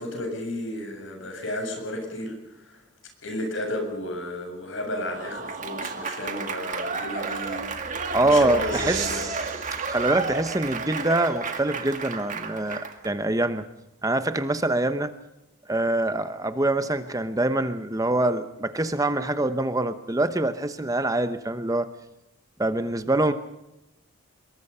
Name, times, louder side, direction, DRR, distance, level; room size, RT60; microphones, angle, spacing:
voice 1, 0.0-2.8 3.2-7.6 7.9-9.2, left 1 dB, 60° left, 4 dB, 7.7 m, -33 dB
Applause / Crowd, 4.9-13.1, right 4 dB, 35° right, 2.1 m, -32 dB
sound 1, 6.9-12.3, right 5 dB, 60° right, 4.3 m, -40 dB
voice 2, 8.1-9.3 9.9-13.6 14.0-15.1 15.7-21.9 22.6-23.3, right 2 dB, 15° right, 10 dB, 0.9 m, -24 dB
26.0 x 22.0 x 5.6 m, 0.89 s
head